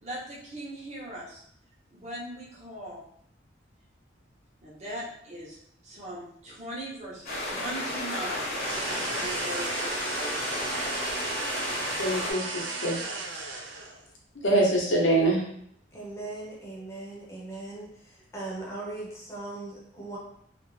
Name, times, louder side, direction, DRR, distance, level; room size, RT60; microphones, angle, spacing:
voice 1, 0.0-1.4 1.9-3.0 4.6-5.6 5.8-10.8, right 1 dB, 35° right, -4 dB, 0.7 m, -40 dB
sound 1, 7.2-12.3, left 1 dB, 50° left, 0.7 m, -32 dB
sound 2, 8.4-14.1, right 3 dB, 80° right, 0.4 m, -35 dB
voice 2, 12.0-13.0 14.4-15.4, right 1 dB, 85° left, -1 dB, 0.7 m, -24 dB
voice 3, 15.9-17.9 18.3-20.2, right 2 dB, 15° left, -4 dB, 0.6 m, -38 dB
2.4 x 2.0 x 3.0 m, 0.68 s
head